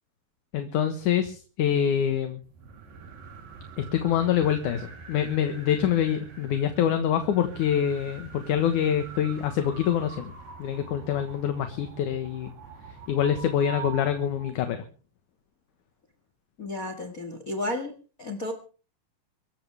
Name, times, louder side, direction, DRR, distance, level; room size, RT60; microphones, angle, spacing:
voice 1, 0.5-2.4 3.8-10.3 10.6-12.5 13.1-14.8, left 9 dB, 65° left, 7 dB, 2.6 m, -25 dB
sound 1, 2.4-14.6, right 5 dB, 70° right, 4.9 m, -44 dB
voice 2, 16.6-17.9 18.2-18.5, left 1 dB, 30° left, 6 dB, 1.8 m, -32 dB
25.0 x 13.5 x 3.4 m, 0.38 s
omnidirectional pair, 4.2 m